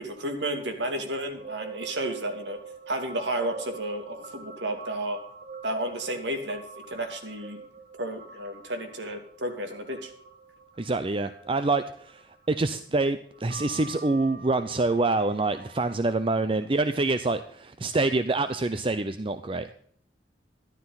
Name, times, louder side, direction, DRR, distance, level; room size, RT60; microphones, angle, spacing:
voice 1, 0.0-2.6 2.9-5.2 5.6-6.6 6.9-7.6 8.0-10.1, right 1 dB, 85° right, 5 dB, 2.7 m, -32 dB
sound 1, 0.9-12.7 13.3-15.9, right 5 dB, 50° right, 1.9 m, -45 dB
voice 2, 10.8-12.2 12.5-19.7, right 2 dB, 30° right, 11 dB, 0.6 m, -26 dB
14.0 x 12.0 x 4.0 m, 0.62 s
head